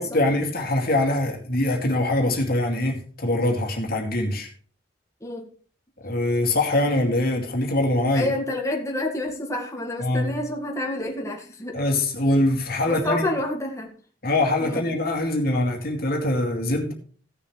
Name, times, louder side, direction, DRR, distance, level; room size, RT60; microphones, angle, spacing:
voice 1, 0.0-4.5 6.0-8.3 10.0-10.3 11.7-13.3 14.2-16.9, left 1 dB, 55° left, 2.3 m, -23 dB
voice 2, 8.1-11.8 12.8-13.9 14.6-14.9, left 1 dB, 15° left, 1.9 m, -28 dB
17.0 x 6.9 x 3.3 m
head